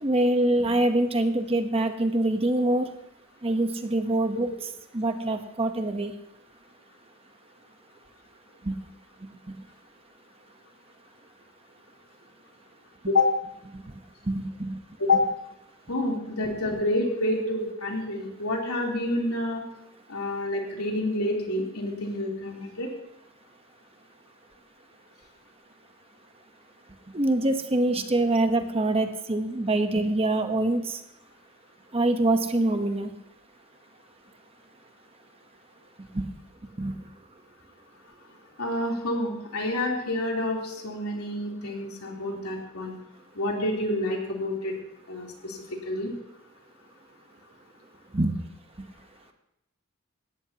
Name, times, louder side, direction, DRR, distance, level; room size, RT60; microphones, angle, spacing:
voice 1, 0.0-2.9 3.4-4.5 4.9-6.1 8.6-8.7 13.7-13.8 14.3-14.8 27.1-31.0 31.9-33.1 36.1-36.2 36.8-37.0 48.1-48.3, right 2 dB, 25° right, 7 dB, 1.0 m, -24 dB
voice 2, 15.9-19.6 20.1-22.9 38.6-42.9 43.4-44.7 45.1-46.1, left 2 dB, 80° left, -1 dB, 3.5 m, -28 dB
18.5 x 14.0 x 2.9 m, 0.80 s
head